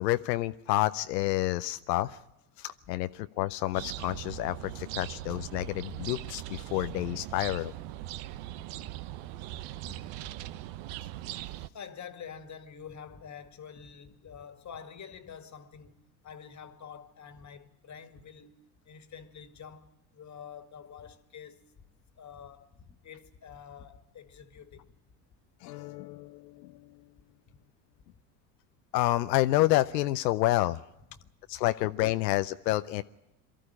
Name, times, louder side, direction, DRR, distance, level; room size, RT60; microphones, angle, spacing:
voice 1, 0.0-2.2 2.6-7.7 25.6-26.9 28.9-30.8 31.5-33.0, left 16 dB, 90° left, 0.7 m, -29 dB
sound 1, 3.7-11.7, right 14 dB, 65° right, 0.9 m, -40 dB
voice 2, 11.7-21.7 22.2-24.9 31.1-31.3, left 7 dB, 35° left, 2.0 m, -47 dB
23.5 x 13.0 x 9.9 m
hypercardioid pair, 85°, 49 cm